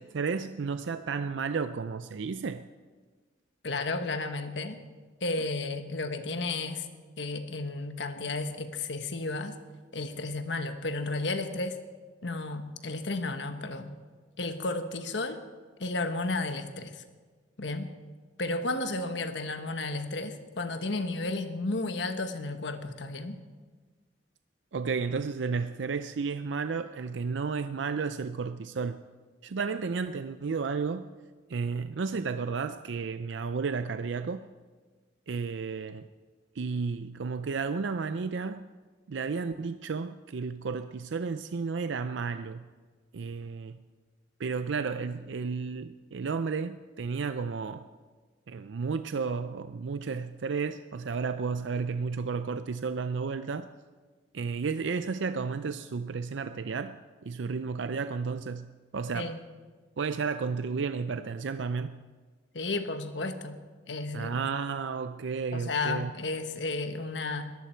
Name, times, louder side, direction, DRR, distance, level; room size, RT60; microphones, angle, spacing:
voice 1, 0.0-2.7 24.7-29.0 29.4-31.1 31.5-34.5 35.3-36.1 36.6-38.7 39.1-42.7 43.1-43.8 44.4-47.9 48.5-53.7 54.3-59.4 60.0-62.0 64.1-66.1, right 5 dB, 80° right, 0.5 m, -32 dB
voice 2, 3.6-4.8 5.2-6.9 7.2-9.6 9.9-11.8 12.2-14.0 14.4-15.4 15.8-17.0 17.6-17.9 18.4-23.4 59.1-59.4 62.5-63.6 63.9-64.5 65.5-67.5, left 2 dB, 75° left, 1.3 m, -33 dB
21.0 x 15.0 x 4.5 m
head